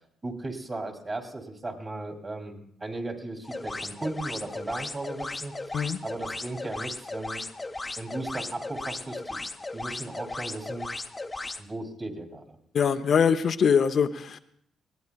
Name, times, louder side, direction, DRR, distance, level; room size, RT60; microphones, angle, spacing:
voice 1, 0.2-5.5 6.0-7.4 8.0-9.4 9.7-10.9 11.6-12.6, right 2 dB, 30° right, 2 dB, 2.6 m, -36 dB
sound 1, 3.4-11.6, left 2 dB, 20° left, 0.7 m, -36 dB
voice 2, 12.7-14.4, left 7 dB, 55° left, 9 dB, 0.5 m, -23 dB
20.5 x 16.5 x 2.3 m, 0.69 s
cardioid pair, 90°, 0 cm